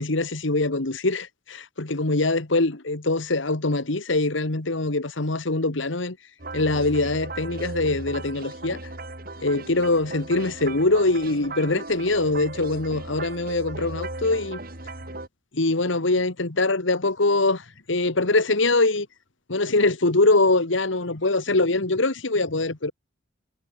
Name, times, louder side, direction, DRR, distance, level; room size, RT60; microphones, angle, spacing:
voice 1, 0.0-6.2 6.5-8.8 9.4-14.6 15.5-19.1 19.5-22.9, left 2 dB, 80° left, 1.8 m, -23 dB
sound 1, 6.4-15.3, right 2 dB, 50° right, 4.6 m, -37 dB
head